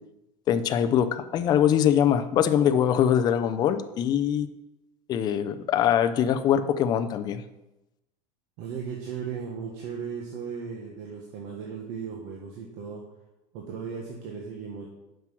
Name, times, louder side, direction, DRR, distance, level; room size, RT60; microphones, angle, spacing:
voice 1, 0.5-4.5 5.1-7.4, left 9 dB, 25° left, 9 dB, 0.5 m, -23 dB
voice 2, 8.6-13.0 13.5-14.9, right 6 dB, 45° right, 0 dB, 1.4 m, -36 dB
9.2 x 6.0 x 6.2 m, 0.97 s
supercardioid pair, 170°, 17 cm